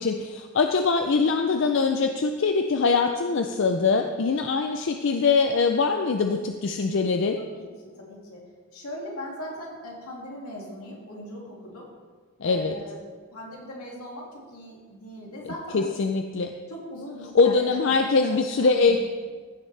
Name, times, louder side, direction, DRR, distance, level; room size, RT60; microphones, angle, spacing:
voice 1, 0.0-7.4 12.4-12.7 15.7-16.5 17.3-19.0, left 4 dB, 55° left, 5 dB, 0.4 m, -23 dB
voice 2, 7.5-8.4 8.7-11.9 12.4-15.9 16.7-19.0, left 1 dB, 85° left, -3 dB, 2.4 m, -40 dB
15.5 x 6.1 x 3.3 m, 1.5 s
head